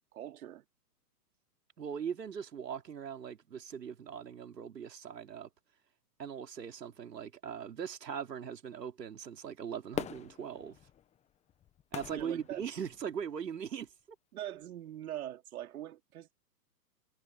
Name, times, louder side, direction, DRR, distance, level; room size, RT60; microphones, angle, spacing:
voice 1, 0.1-0.6 12.1-12.6 14.3-16.4, right 12 dB, 60° right, 3.5 m, -42 dB
voice 2, 1.8-5.5 6.2-10.8 11.9-13.9, right 7 dB, 85° right, 3.6 m, -40 dB
Fireworks, 9.9-13.3 13.8-13.9, left 10 dB, 15° left, 1.2 m, -43 dB
hypercardioid pair, 140°, 48 cm